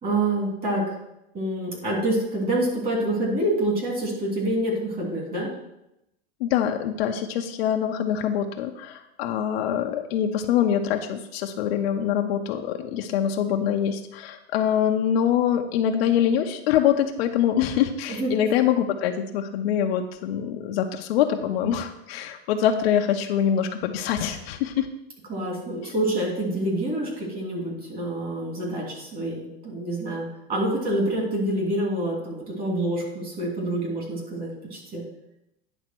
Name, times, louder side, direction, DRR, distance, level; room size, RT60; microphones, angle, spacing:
voice 1, 0.0-1.0 1.3-5.5 18.1-18.3 25.3-35.0, right 1 dB, 30° right, -2 dB, 3.0 m, -27 dB
voice 2, 6.4-24.9, left 9 dB, 70° left, 4 dB, 0.8 m, -24 dB
10.0 x 3.6 x 6.1 m, 0.86 s
supercardioid pair, 135°, 31 cm